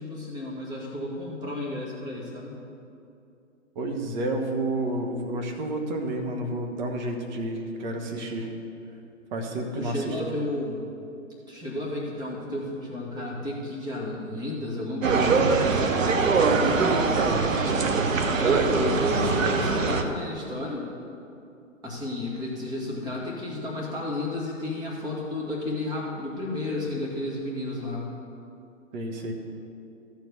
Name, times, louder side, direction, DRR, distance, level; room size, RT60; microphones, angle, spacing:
voice 1, 0.0-2.5 9.8-10.8 11.5-15.5 18.4-20.8 21.8-28.0, left 1 dB, 10° right, -6 dB, 2.0 m, -32 dB
voice 2, 3.7-8.5 9.3-10.2 16.6-17.4 28.9-29.3, right 2 dB, 35° right, 2 dB, 1.3 m, -30 dB
sound 1, 15.0-20.0, right 4 dB, 75° right, 1.0 m, -23 dB
13.0 x 4.6 x 7.0 m, 2.6 s
figure-of-eight pair, 130°, 39 cm